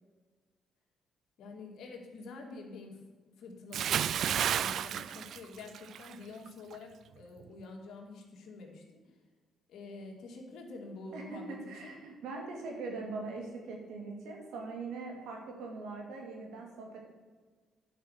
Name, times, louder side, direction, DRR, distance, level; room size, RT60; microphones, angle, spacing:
voice 1, 1.4-3.0 3.4-8.8 9.7-11.6 11.8-11.9, left 3 dB, 75° left, 1 dB, 2.2 m, -47 dB
Bathtub (filling or washing) / Splash splatter, 3.7-6.1 6.5-6.7, right 9 dB, 70° right, 0.3 m, -31 dB
voice 2, 11.1-17.0, right 3 dB, 90° right, 0 dB, 2.5 m, -41 dB
10.0 x 5.5 x 6.3 m, 1.4 s
cardioid pair, 90°, 0 cm